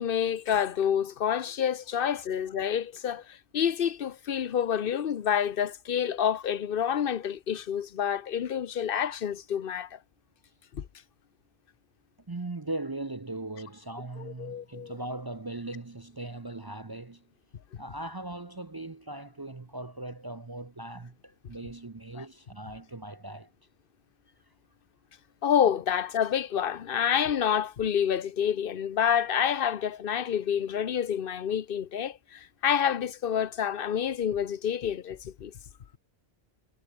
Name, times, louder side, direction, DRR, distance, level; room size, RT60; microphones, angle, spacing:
voice 1, 0.0-10.0 10.7-10.9 14.2-14.9 22.2-22.3 25.4-35.5, left 8 dB, 60° left, 1.0 m, -28 dB
voice 2, 12.3-17.3 17.8-23.5, right 2 dB, 25° right, 0.7 m, -39 dB
omnidirectional pair, 1.0 m